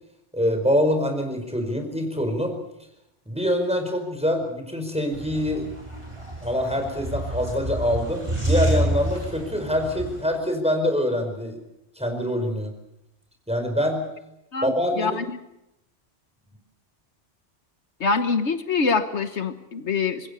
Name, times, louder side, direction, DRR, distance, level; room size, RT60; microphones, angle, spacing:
voice 1, 0.3-2.6 3.3-5.6 6.4-11.6 12.0-12.7 13.5-14.0 14.6-15.2, equal, 5° right, 4 dB, 5.0 m, -25 dB
sound 1, 5.1-10.2, right 1 dB, 25° right, 6.1 m, -28 dB
voice 2, 14.5-15.4 18.0-20.3, left 4 dB, 75° left, 9 dB, 1.5 m, -25 dB
26.0 x 21.0 x 6.8 m, 0.84 s
omnidirectional pair, 1.2 m